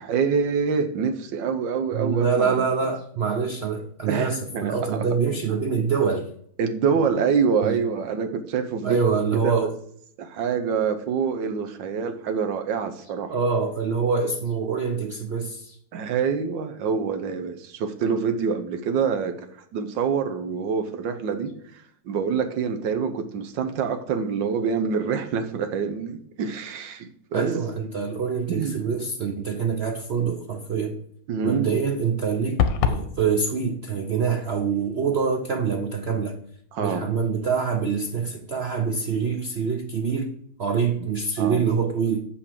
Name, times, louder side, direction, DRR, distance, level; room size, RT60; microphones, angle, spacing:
voice 1, 0.0-2.5 4.1-5.0 6.6-9.0 9.4-9.7 10.2-13.3 15.9-27.5 28.5-28.8 31.3-31.9 36.7-37.0 41.4-41.6, right 6 dB, 90° right, 7 dB, 1.6 m, -26 dB
voice 2, 1.9-6.3 7.6-7.8 8.8-9.7 13.3-15.8 27.3-31.0 31.4-36.4 36.8-40.3 40.6-42.2, right 5 dB, 65° right, 5 dB, 0.6 m, -25 dB
sound 1, 32.6-33.1, left 7 dB, 90° left, 1.6 m, -21 dB
6.7 x 5.8 x 7.4 m, 0.66 s
omnidirectional pair, 1.9 m